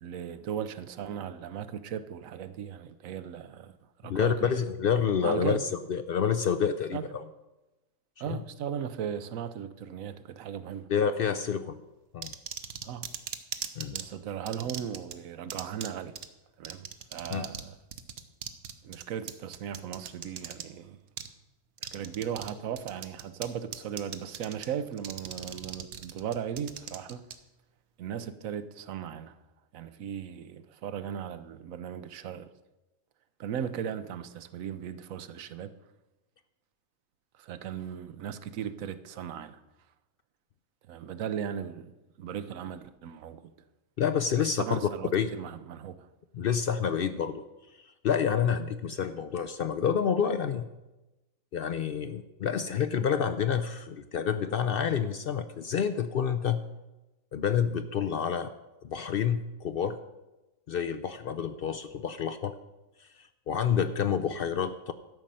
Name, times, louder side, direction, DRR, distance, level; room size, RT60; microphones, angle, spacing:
voice 1, 0.0-3.7 4.0-4.5 5.2-5.6 6.9-7.1 8.2-10.9 12.8-13.2 13.9-16.1 16.6-17.8 18.8-21.0 21.8-27.3 28.0-29.4 29.7-32.5 33.4-35.7 37.4-39.6 40.9-41.9 42.2-43.5 44.4-46.1 46.4-46.5, right 8 dB, 90° right, 1.1 m, -37 dB
voice 2, 4.1-5.6 5.9-7.2 8.3-8.4 10.9-11.8 12.1-12.3 13.8-14.0 17.3-17.5 44.0-45.3 46.3-47.4 47.8-50.7 51.5-56.6 57.3-58.5 58.9-60.0 60.7-62.5 63.0-64.9, left 7 dB, 60° left, 0.6 m, -28 dB
sound 1, 12.2-14.0 14.5-15.1 15.5-15.9 16.2-16.3 16.6-17.7 17.9-20.6 21.2-21.3 21.8-22.5 22.8-23.5 23.7-24.7 25.0-27.3, right 8 dB, 60° right, 1.0 m, -38 dB
12.5 x 5.4 x 7.5 m
omnidirectional pair, 1.4 m